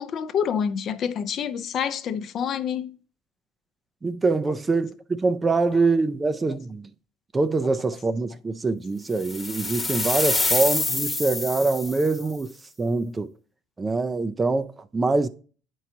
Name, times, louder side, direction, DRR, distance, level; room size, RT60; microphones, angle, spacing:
voice 1, 0.0-3.0 10.3-10.4, left 8 dB, 50° left, 0.6 m, -27 dB
voice 2, 4.0-6.9 7.3-12.5 12.8-13.3 13.8-15.3, right 3 dB, 20° right, 0.5 m, -24 dB
sound 1, 9.2-12.2, left 3 dB, 15° left, 1.1 m, -26 dB
9.9 x 4.6 x 2.8 m
supercardioid pair, 100°, 0 cm